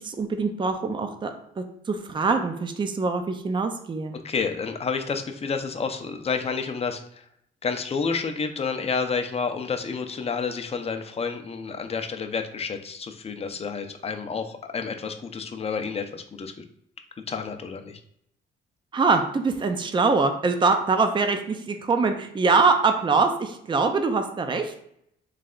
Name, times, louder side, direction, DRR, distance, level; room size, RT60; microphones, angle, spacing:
voice 1, 0.0-4.1 18.9-24.7, right 4 dB, 25° right, 6 dB, 0.5 m, -23 dB
voice 2, 4.2-7.2 7.6-16.5 17.3-18.0, left 5 dB, 30° left, 7 dB, 0.6 m, -30 dB
3.3 x 3.3 x 3.7 m, 0.72 s
cardioid pair, 90°, 20 cm